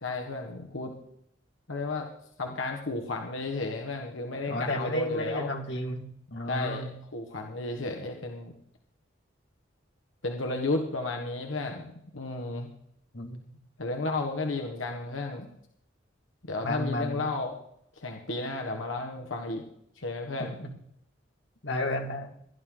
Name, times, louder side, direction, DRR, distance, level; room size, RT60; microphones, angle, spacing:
voice 1, 0.0-0.9 1.7-2.1 2.4-5.5 6.5-6.8 7.1-8.5 10.2-11.9 12.1-12.7 13.8-15.5 16.5-17.6 18.0-19.6 20.0-20.6, left 2 dB, 90° left, 2 dB, 1.5 m, -33 dB
voice 2, 4.5-6.9 13.1-13.4 16.6-17.3 20.4-20.7 21.6-22.3, left 1 dB, 65° left, 2 dB, 2.3 m, -32 dB
16.5 x 11.5 x 3.9 m, 0.70 s
head